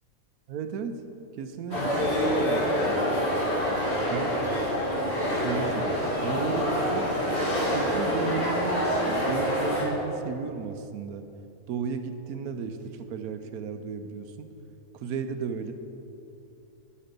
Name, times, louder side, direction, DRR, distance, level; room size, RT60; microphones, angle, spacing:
voice 1, 0.5-1.0 1.4-3.1 3.8-4.4 5.4-7.2 7.7-11.3 11.7-14.5 14.9-15.7, right 6 dB, 85° right, 8 dB, 1.2 m, -34 dB
sound 1, 1.7-9.8, equal, 45° left, 2.3 m, -26 dB
10.0 x 7.5 x 5.2 m, 2.8 s
omnidirectional pair, 1.5 m